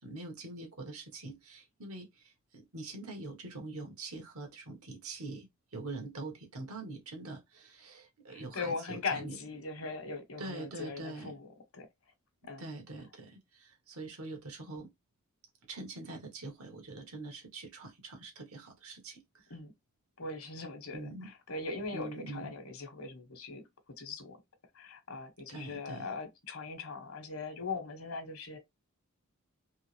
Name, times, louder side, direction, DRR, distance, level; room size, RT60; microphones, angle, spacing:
voice 1, 0.0-5.5 5.7-9.4 10.4-11.3 12.6-14.9 15.7-19.5 20.9-21.3 21.9-22.5 25.5-26.1, right 2 dB, 85° right, 1.5 m, -44 dB
voice 2, 8.3-11.9 12.4-12.6 19.5-19.7 20.2-23.6 24.0-24.4 24.7-28.6, left 4 dB, 70° left, 1.1 m, -40 dB
3.6 x 3.0 x 3.3 m
head